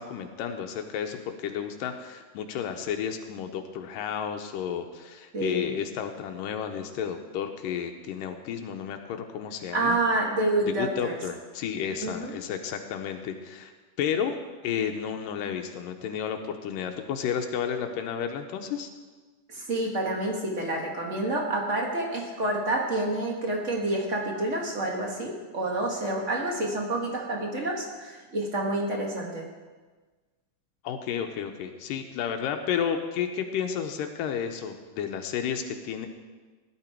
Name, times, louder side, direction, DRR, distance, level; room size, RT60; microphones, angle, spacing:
voice 1, 0.0-10.0 10.8-13.7 14.0-14.4 14.6-18.9 30.8-36.1, left 8 dB, 85° left, 5 dB, 2.4 m, -32 dB
voice 2, 5.3-5.7 9.7-11.1 12.0-12.3 19.5-29.5, right 2 dB, 35° right, 0 dB, 1.2 m, -28 dB
16.5 x 11.0 x 4.5 m, 1.4 s
omnidirectional pair, 3.9 m